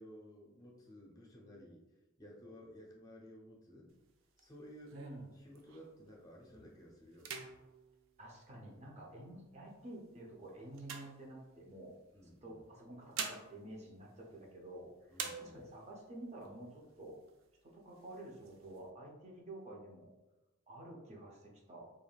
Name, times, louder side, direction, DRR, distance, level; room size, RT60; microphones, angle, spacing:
voice 1, 0.0-1.8 2.2-3.9 4.4-4.9 5.3-7.3 12.1-12.6 15.1-15.6, equal, 20° left, -3 dB, 0.5 m, -55 dB
sound 1, 3.9-6.1 6.5-6.8 7.1-9.0 9.7-11.9 12.7-14.8 15.1-16.0 16.4-16.5 16.8-17.5 17.9-18.8, right 6 dB, 90° right, 0.4 m, -48 dB
voice 2, 4.9-5.3 8.2-12.0 12.4-17.2 17.6-20.1 20.7-21.9, right 1 dB, 35° right, -1 dB, 0.5 m, -50 dB
3.3 x 2.3 x 2.3 m, 1.0 s
head